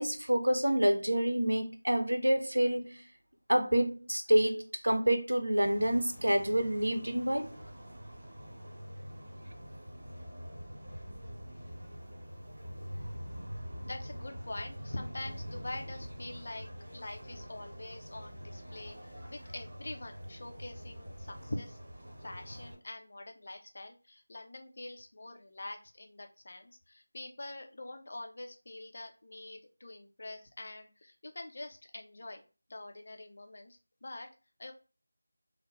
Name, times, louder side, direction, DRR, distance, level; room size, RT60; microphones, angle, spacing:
voice 1, 0.0-3.0 3.5-7.5, right 1 dB, 80° right, 0.6 m, -28 dB
sound 1, 5.6-22.7, equal, 45° right, 1.7 m, -45 dB
voice 2, 13.9-16.7 16.9-19.0 19.3-21.8 22.2-32.4 32.7-34.3 34.6-34.7, left 2 dB, 50° left, 0.6 m, -44 dB
3.0 x 2.1 x 3.3 m
figure-of-eight pair, 170°, 0 cm